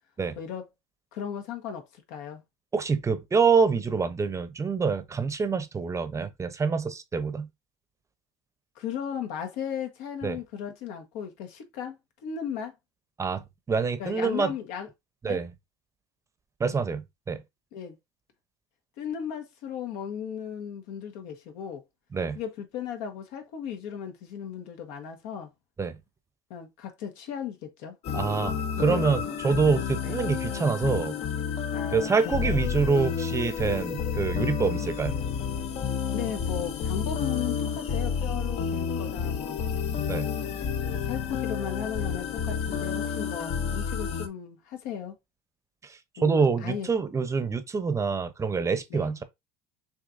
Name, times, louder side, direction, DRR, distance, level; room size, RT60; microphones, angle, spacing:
voice 1, 0.3-0.6 1.1-2.4 8.7-12.7 14.0-14.9 15.2-15.4 17.7-17.9 19.0-21.8 22.3-25.5 26.5-28.0 28.8-29.0 29.4-29.6 30.0-30.1 31.7-32.6 36.1-39.8 40.8-45.2 46.2-46.9 48.9-49.2, left 8 dB, 70° left, 1.4 m, -36 dB
voice 2, 2.7-7.5 10.2-10.4 13.2-13.4 13.7-14.5 15.2-15.5 16.6-17.4 22.1-22.4 25.8-25.9 28.1-31.2 31.9-35.1 40.1-40.3 46.2-49.2, right 5 dB, 20° right, 0.8 m, -26 dB
sound 1, 28.0-44.3, left 7 dB, 50° left, 0.9 m, -30 dB
6.3 x 3.2 x 2.6 m
supercardioid pair, 100°, 14 cm